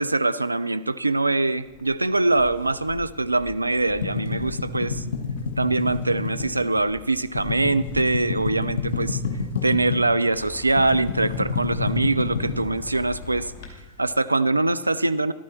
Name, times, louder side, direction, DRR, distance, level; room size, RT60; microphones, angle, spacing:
voice 1, 0.0-5.0 5.6-9.2 9.6-13.5 14.0-15.3, right 2 dB, 85° right, 12 dB, 0.4 m, -23 dB
sound 1, 1.5-13.7, left 5 dB, 40° left, 2.6 m, -43 dB
sound 2, 2.3-3.5 3.8-10.1 10.4-13.5, left 5 dB, 65° left, 1.7 m, -29 dB
14.0 x 12.5 x 4.3 m, 1.1 s
figure-of-eight pair, 90°, 0 cm